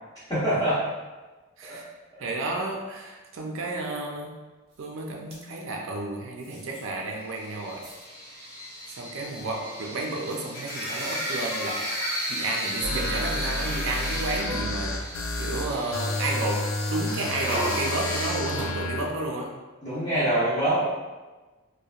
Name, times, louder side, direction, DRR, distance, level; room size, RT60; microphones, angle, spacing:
voice 1, 0.3-0.8 1.7-1.8 19.8-20.9, right 1 dB, 15° left, -14 dB, 0.6 m, -24 dB
voice 2, 2.2-4.4 4.8-7.9 9.0-11.9 12.3-15.0 15.4-19.6, right 2 dB, 65° right, 0 dB, 0.4 m, -31 dB
sound 1, 4.8-4.9 5.1-5.4 6.4-6.8 7.2-7.3 7.4-8.0 8.9-9.0 9.2-9.4 11.0-12.1 12.7-13.1 13.7-15.4 15.7-18.7 19.0-19.1, equal, 25° right, 0.7 m, -39 dB
sound 2, 7.4-18.3, equal, 45° left, 0.8 m, -35 dB
sound 3, 12.8-19.0, left 2 dB, 65° left, 0.3 m, -31 dB
2.7 x 2.1 x 2.3 m, 1.2 s
head